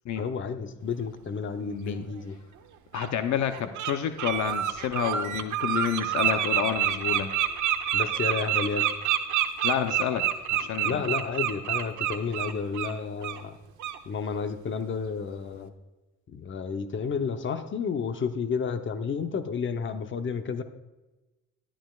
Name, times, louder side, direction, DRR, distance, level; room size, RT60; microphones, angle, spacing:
voice 1, 0.2-2.4 7.9-8.9 10.8-13.5 14.1-15.7 16.3-20.6, left 5 dB, 40° left, 8 dB, 0.9 m, -31 dB
voice 2, 1.6-2.1 2.9-7.3 9.6-11.0, left 9 dB, 70° left, 8 dB, 0.8 m, -29 dB
Bird, 2.1-2.2 2.9-3.1 3.5-3.9 4.2-12.9 13.2-13.4 13.8-14.0, right 11 dB, 75° right, 0.9 m, -27 dB
12.5 x 11.5 x 2.4 m, 1.1 s
cardioid pair, 90°, 30 cm